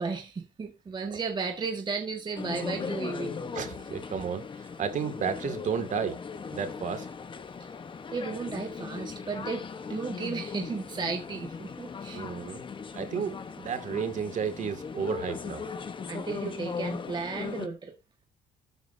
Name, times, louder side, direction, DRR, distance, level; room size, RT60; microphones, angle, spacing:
voice 1, 0.0-3.3 3.8-3.9 7.6-7.7 8.1-12.2 16.1-17.9, right 4 dB, 25° right, 1.6 m, -34 dB
sound 1, 2.4-17.7, left 5 dB, 30° left, 1.1 m, -38 dB
voice 2, 3.5-4.4 4.8-6.2 6.5-7.1 12.1-12.6 12.9-15.6, right 7 dB, 45° right, 2.2 m, -32 dB
12.5 x 9.1 x 2.7 m
cardioid pair, 110°, 17 cm